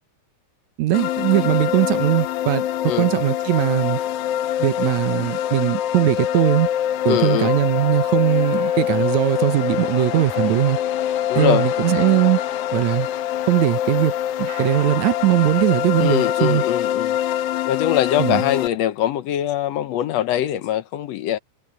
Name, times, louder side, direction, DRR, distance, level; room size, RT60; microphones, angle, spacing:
voice 1, 0.8-4.0 4.6-6.7 7.1-10.8 11.4-12.4 12.7-13.1 13.5-14.1 14.4-16.6 18.2-18.4, right 15 dB, 70° right, 2.0 m, -20 dB
sound 1, 0.9-18.7, left 11 dB, 90° left, 1.3 m, -24 dB
voice 2, 7.1-7.5 11.3-11.7 16.0-17.2 17.6-21.4, left 11 dB, 70° left, 1.7 m, -22 dB
sound 2, 8.3-16.7, right 5 dB, 45° right, 3.8 m, -46 dB
omnidirectional pair, 3.6 m